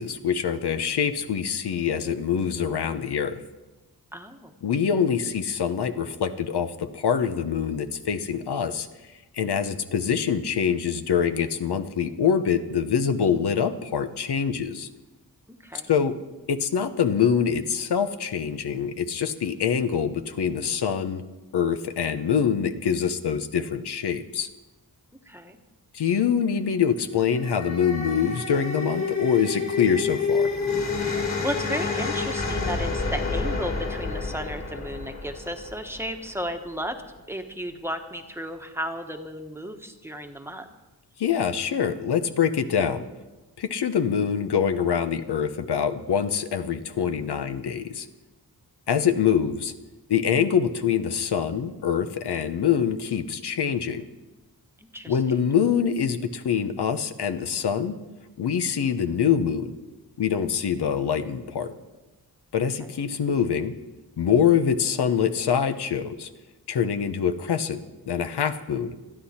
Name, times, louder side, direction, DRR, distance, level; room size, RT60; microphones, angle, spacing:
voice 1, 0.0-3.4 4.6-8.9 9.3-14.9 15.9-16.2 16.5-21.2 21.5-24.5 25.9-30.5 41.2-43.1 43.6-48.1 48.9-49.7 50.1-54.0 55.1-57.9 58.4-59.7 60.2-61.7 62.5-63.7 64.2-66.3 66.7-67.8 68.1-68.9, left 7 dB, 80° left, 9 dB, 1.0 m, -25 dB
voice 2, 4.1-4.5 15.6-15.9 25.3-25.6 31.0-37.0 37.3-40.7 54.8-55.2 62.8-63.0, equal, 5° right, 5 dB, 1.2 m, -34 dB
sound 1, 27.1-36.4, left 4 dB, 40° left, 3.3 m, -29 dB
27.5 x 10.0 x 4.3 m, 1.1 s
wide cardioid pair, 120°, 39 cm